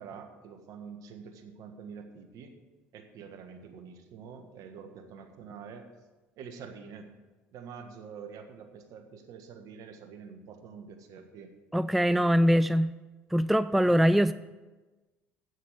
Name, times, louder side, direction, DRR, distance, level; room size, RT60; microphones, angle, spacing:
voice 1, 0.0-2.5 2.9-5.9 6.4-7.1 7.5-11.5 12.0-12.6 13.8-14.2, right 6 dB, 60° right, 1.5 m, -46 dB
voice 2, 11.7-12.9 13.3-14.3, equal, ahead, 0.3 m, -23 dB
8.3 x 7.4 x 7.8 m
hypercardioid pair, 65°, 7 cm